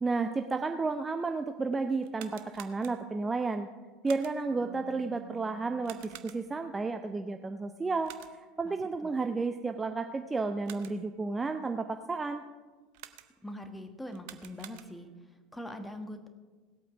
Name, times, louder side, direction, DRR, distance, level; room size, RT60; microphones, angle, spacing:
voice 1, 0.0-3.7 4.0-12.4, right 3 dB, 15° right, 7 dB, 0.5 m, -32 dB
sound 1, 2.0-3.3 4.0-4.6 5.8-6.7 8.0-8.6 10.4-11.2 12.9-13.6 14.1-15.2, right 13 dB, 55° right, 0.7 m, -51 dB
sound 2, 4.5-8.0, right 10 dB, 70° right, 2.1 m, -54 dB
voice 2, 13.4-16.3, left 1 dB, 5° left, 7 dB, 1.3 m, -43 dB
18.0 x 8.5 x 5.0 m, 1.4 s
figure-of-eight pair, 75°, 0 cm